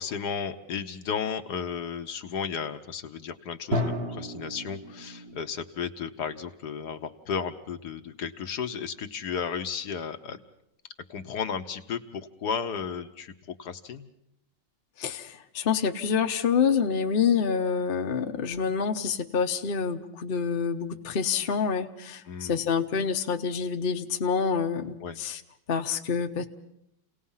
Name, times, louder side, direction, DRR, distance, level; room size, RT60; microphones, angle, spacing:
voice 1, 0.0-10.4 11.1-14.1 22.3-22.7 25.0-25.2, left 6 dB, 65° left, 8 dB, 1.5 m, -34 dB
Drum, 3.7-5.6, left 1 dB, 35° right, 1.6 m, -32 dB
voice 2, 15.0-25.4 25.7-26.4, left 6 dB, 40° left, 5 dB, 1.0 m, -27 dB
29.0 x 18.5 x 5.6 m, 0.80 s
omnidirectional pair, 2.0 m